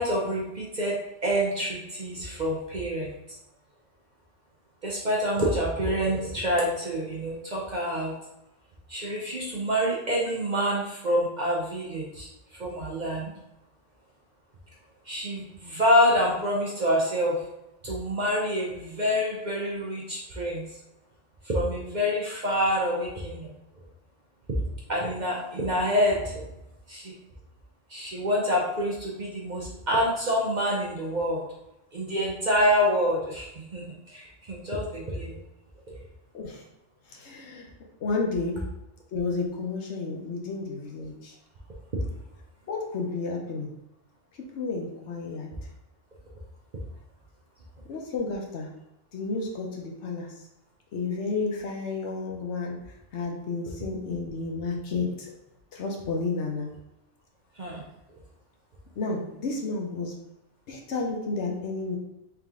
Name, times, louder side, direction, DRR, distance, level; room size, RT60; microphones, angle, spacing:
voice 1, 0.0-3.1 4.8-8.1 8.9-12.3 12.5-13.3 15.1-17.4 17.8-20.6 21.4-23.5 24.9-26.5 26.9-27.1 27.9-31.4 31.9-35.4 57.6-57.8, equal, 45° right, -3 dB, 0.7 m, -27 dB
voice 2, 37.1-37.7 38.0-38.6 39.1-41.3 42.7-43.7 44.5-45.5 47.9-48.7 49.1-50.3 50.9-52.8 53.1-55.3 55.7-56.7 59.0-60.1 60.7-62.0, left 3 dB, 65° left, 0 dB, 1.0 m, -31 dB
3.4 x 3.0 x 3.6 m, 0.87 s
omnidirectional pair, 1.3 m